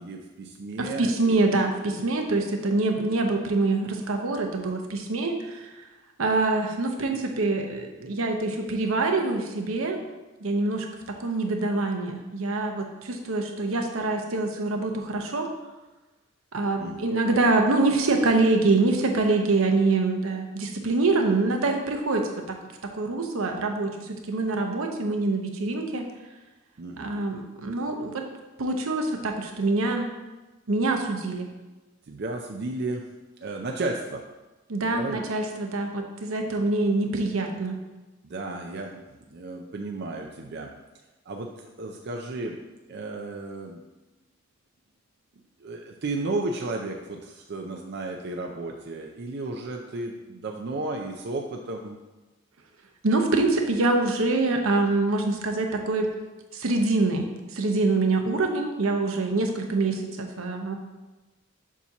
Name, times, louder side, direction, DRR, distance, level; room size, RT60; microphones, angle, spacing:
voice 1, 0.0-1.4 16.8-17.0 26.8-27.1 32.1-33.0 33.4-34.2 34.9-35.2 38.2-40.7 41.3-42.6 42.9-43.8 45.6-52.0, right 2 dB, 55° right, 2 dB, 0.5 m, -33 dB
voice 2, 0.8-5.7 6.2-10.0 10.4-10.9 11.2-15.5 16.5-22.6 22.9-26.1 27.0-28.2 28.6-30.1 30.7-31.5 34.7-37.8 53.0-56.1 56.5-60.8, right 3 dB, 80° right, 3 dB, 0.8 m, -25 dB
7.2 x 2.8 x 5.8 m, 1.1 s
head